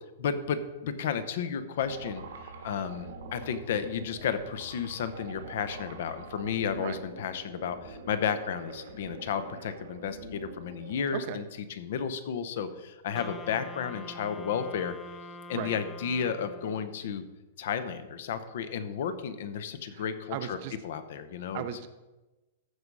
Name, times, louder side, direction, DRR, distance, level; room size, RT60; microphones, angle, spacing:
voice 1, 0.2-2.2 2.6-14.9 15.5-17.2 17.6-20.6 20.8-21.6, left 7 dB, 55° left, 12 dB, 0.8 m, -33 dB
sound 1, 1.8-11.3, right 3 dB, 85° right, 1.6 m, -45 dB
Wind instrument woodwind instrument, 13.1-17.0, left 2 dB, 10° left, 0.5 m, -45 dB
voice 2, 20.3-20.8 21.5-21.9, right 10 dB, 35° right, 11 dB, 0.6 m, -36 dB
14.5 x 4.8 x 5.4 m, 1.1 s
supercardioid pair, 175°, 0 cm